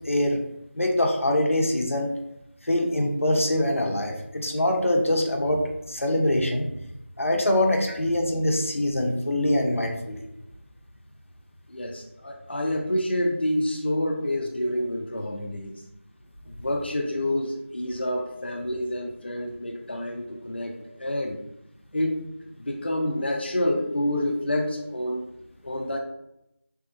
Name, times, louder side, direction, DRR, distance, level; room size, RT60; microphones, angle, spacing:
voice 1, 0.1-0.4 0.7-2.1 2.6-5.6 5.9-6.7 7.2-10.2, left 1 dB, 90° left, 1 dB, 0.8 m, -24 dB
voice 2, 11.7-15.8 16.5-21.4 21.9-22.2 22.6-25.2 25.6-26.0, left 1 dB, 55° left, -1 dB, 0.5 m, -28 dB
3.5 x 3.4 x 2.6 m, 0.84 s
figure-of-eight pair, 180°, 7 cm